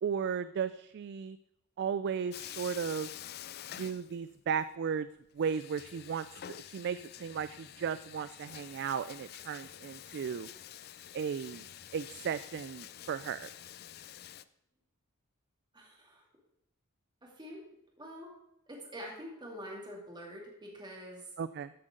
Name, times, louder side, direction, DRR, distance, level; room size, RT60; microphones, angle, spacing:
voice 1, 0.0-1.4 1.8-3.1 3.8-5.1 5.3-10.5 11.1-11.7 11.9-13.5 21.4-21.7, right 7 dB, 50° right, 14 dB, 0.3 m, -35 dB
Bathtub (filling or washing), 2.3-4.6 4.9-5.0 5.4-14.4, left 11 dB, 45° left, 0.4 m, -48 dB
voice 2, 15.7-16.2 17.2-17.6 18.0-18.3 18.7-21.3, equal, 20° right, -2 dB, 2.6 m, -46 dB
14.5 x 7.7 x 3.8 m, 0.82 s
head